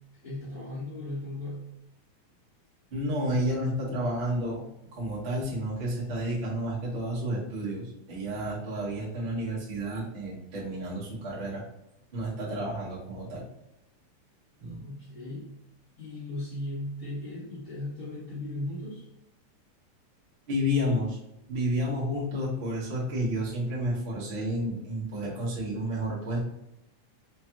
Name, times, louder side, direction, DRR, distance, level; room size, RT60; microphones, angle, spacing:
voice 1, 0.2-1.6 14.8-15.5 16.0-19.1, left 1 dB, 75° left, -11 dB, 0.7 m, -37 dB
voice 2, 2.9-4.6 4.9-11.6 12.1-13.4 14.6-14.8 20.5-21.2 21.5-26.4, equal, 55° right, -7 dB, 0.6 m, -31 dB
5.0 x 2.4 x 2.9 m, 0.85 s
omnidirectional pair, 3.5 m